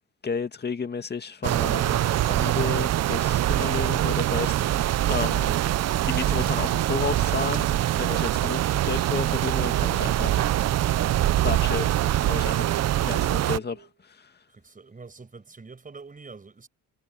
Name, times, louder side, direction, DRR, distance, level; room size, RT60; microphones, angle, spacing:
voice 1, 0.2-5.6 6.0-7.7 8.0-10.5 11.4-11.9 12.2-14.3, left 5 dB, 35° left, 2.0 m, -32 dB
sound 1, 1.4-13.6, right 13 dB, 60° right, 0.6 m, -24 dB
Guitar, 12.6-13.9, right 11 dB, 75° right, 4.7 m, -44 dB
voice 2, 14.5-16.7, right 4 dB, 25° right, 5.6 m, -46 dB
cardioid pair, 90°, 30 cm